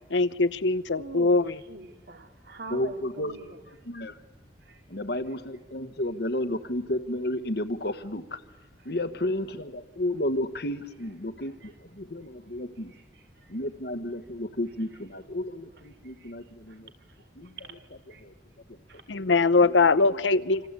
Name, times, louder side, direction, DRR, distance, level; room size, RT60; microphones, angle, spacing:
voice 1, 0.1-1.6 19.1-20.7, left 3 dB, 85° left, 0.8 m, -22 dB
voice 2, 1.0-1.3 1.7-3.5 4.7-4.8 16.2-16.3 17.6-17.8 18.1-18.2 18.9-19.0, right 3 dB, 65° right, 2.7 m, -42 dB
voice 3, 2.7-3.3 3.7-4.2 4.9-8.4 8.8-12.9 13.5-16.9 17.4-18.3 18.7-18.8 19.6-19.9, left 1 dB, 60° left, 1.5 m, -32 dB
27.0 x 26.0 x 8.3 m
head